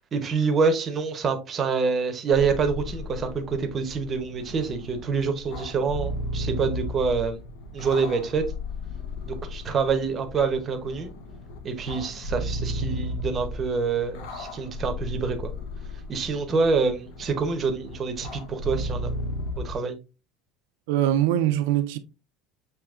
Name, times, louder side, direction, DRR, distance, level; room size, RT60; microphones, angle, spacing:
voice 1, 0.1-7.4 7.7-8.4 9.3-11.1 11.6-15.5 16.1-19.1 19.6-20.0, right 5 dB, 30° right, 0.7 m, -26 dB
sound 1, 2.3-19.8, left 1 dB, 80° left, 0.8 m, -35 dB
voice 2, 20.9-22.0, right 12 dB, 80° right, 0.5 m, -22 dB
6.9 x 2.8 x 2.4 m
cardioid pair, 145°, 0 cm